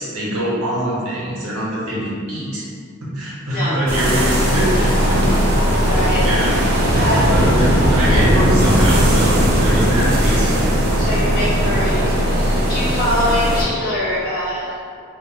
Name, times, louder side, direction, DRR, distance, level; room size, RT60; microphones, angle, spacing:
voice 1, 0.0-2.7 3.1-5.3 5.8-6.6 7.3-10.6, right 1 dB, 85° right, -7 dB, 0.8 m, -23 dB
voice 2, 3.5-3.8 5.7-6.3 6.9-7.3 10.9-15.0, left 1 dB, 40° left, -9 dB, 0.9 m, -24 dB
Toilet flush / Fill (with liquid), 3.9-12.2, left 1 dB, 85° left, 0.6 m, -36 dB
sound 1, 3.9-13.6, equal, 45° right, 0.4 m, -17 dB
3.2 x 2.2 x 2.3 m, 2.2 s
head